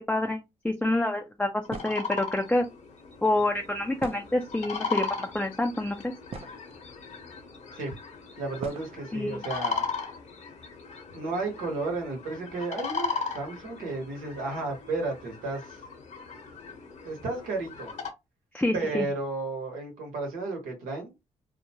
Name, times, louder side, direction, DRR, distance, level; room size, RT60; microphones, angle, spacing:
voice 1, 0.1-2.6 3.2-6.1 9.1-9.4 18.5-19.1, left 1 dB, 10° left, 0.4 m, -27 dB
sound 1, 1.6-18.1, left 5 dB, 60° left, 0.8 m, -37 dB
sound 2, 1.7-2.2 4.0-4.7 5.5-5.6 6.0-6.8 7.7-7.8 8.6-8.9, right 5 dB, 45° right, 0.5 m, -41 dB
voice 2, 8.4-9.8 11.1-15.8 17.0-17.9 18.7-21.1, right 3 dB, 90° right, 1.2 m, -33 dB
2.4 x 2.1 x 2.8 m
supercardioid pair, 65°, 14 cm